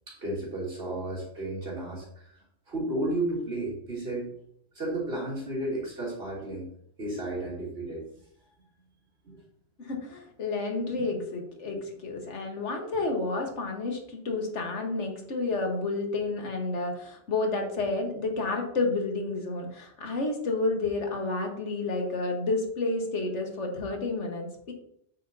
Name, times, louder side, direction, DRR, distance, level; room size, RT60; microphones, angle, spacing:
voice 1, 0.1-4.3 4.7-6.7 7.0-8.0 9.2-9.4 11.7-11.8 13.0-13.1, right 1 dB, 60° right, -5 dB, 3.1 m, -33 dB
voice 2, 9.8-11.8 12.0-24.7, left 3 dB, 90° left, 2 dB, 1.7 m, -30 dB
8.3 x 7.5 x 2.7 m, 0.70 s
omnidirectional pair, 1.2 m